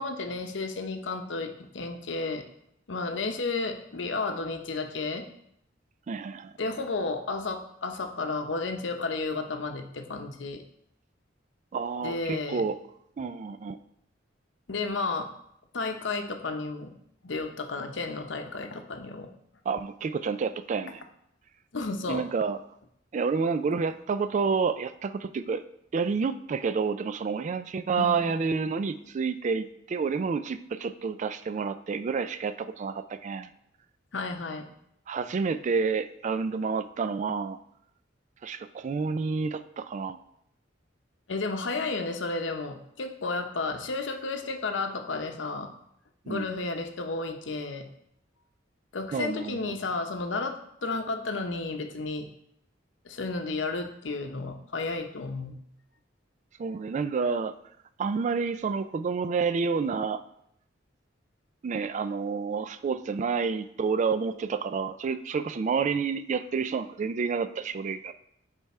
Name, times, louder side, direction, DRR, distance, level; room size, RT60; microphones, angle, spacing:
voice 1, 0.0-2.4 2.9-5.3 6.6-10.6 12.0-12.6 14.7-15.3 15.7-16.9 17.2-19.3 21.7-22.3 28.0-28.3 28.7-28.8 34.1-34.7 41.3-45.7 46.3-47.9 48.9-52.3 53.0-55.6, left 3 dB, 75° left, 6 dB, 0.8 m, -32 dB
voice 2, 6.1-6.5 11.7-12.8 13.2-13.8 19.7-21.0 22.1-22.6 23.1-25.6 25.9-33.5 35.1-37.6 38.4-40.2 46.3-46.5 49.1-49.7 56.6-57.5 58.0-60.2 61.6-68.1, right 5 dB, 40° right, 12 dB, 0.3 m, -29 dB
9.2 x 3.4 x 4.2 m, 0.74 s
head